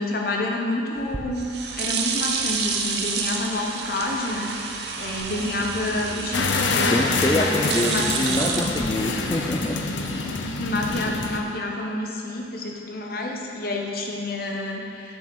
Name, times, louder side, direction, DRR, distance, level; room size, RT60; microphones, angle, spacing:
voice 1, 0.0-1.5 1.8-8.1 10.6-15.2, left 2 dB, 50° left, 0 dB, 0.9 m, -29 dB
sound 1, 1.0-9.4, right 5 dB, 60° right, 0.6 m, -30 dB
sound 2, 5.2-11.4, equal, 35° right, 1.8 m, -39 dB
sound 3, 6.3-11.4, left 3 dB, 80° left, 0.6 m, -26 dB
voice 2, 6.9-9.8, left 1 dB, 20° left, -1 dB, 0.3 m, -25 dB
7.0 x 6.3 x 5.2 m, 2.7 s
head